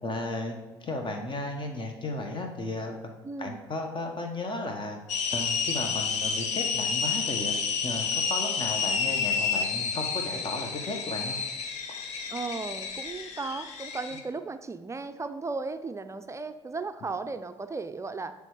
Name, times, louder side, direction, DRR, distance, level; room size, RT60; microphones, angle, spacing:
voice 1, 0.0-3.1 3.4-5.0 5.3-7.6 7.8-11.4 12.0-12.2, left 2 dB, 35° left, 4 dB, 1.3 m, -34 dB
voice 2, 3.2-3.6 12.3-18.3, right 3 dB, 20° right, 10 dB, 0.5 m, -35 dB
sound 1, 5.1-14.2, left 6 dB, 55° left, 0.8 m, -30 dB
10.5 x 3.5 x 4.9 m, 1.1 s
figure-of-eight pair, 50°, 14 cm